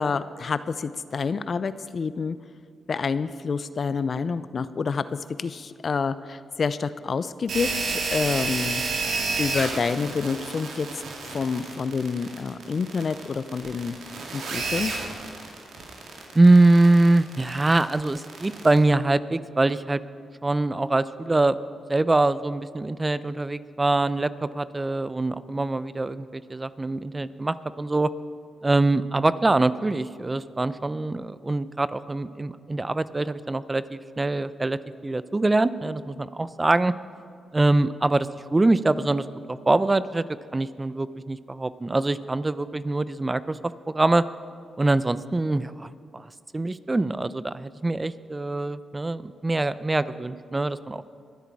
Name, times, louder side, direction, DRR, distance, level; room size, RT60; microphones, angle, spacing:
voice 1, 0.0-2.4 2.9-5.0 5.4-8.8 9.4-10.9 11.3-13.9 14.3-14.9, left 5 dB, 55° left, 14 dB, 0.5 m, -28 dB
sound 1, 7.5-18.8, right 4 dB, 75° right, 2.2 m, -31 dB
voice 2, 16.3-20.0 20.4-21.6 21.9-28.1 28.6-36.9 37.5-40.2 40.5-43.6 43.9-44.2 44.8-46.3 46.5-51.0, right 2 dB, 25° right, 15 dB, 0.6 m, -23 dB
24.0 x 8.3 x 4.7 m, 2.3 s
supercardioid pair, 50°, 0 cm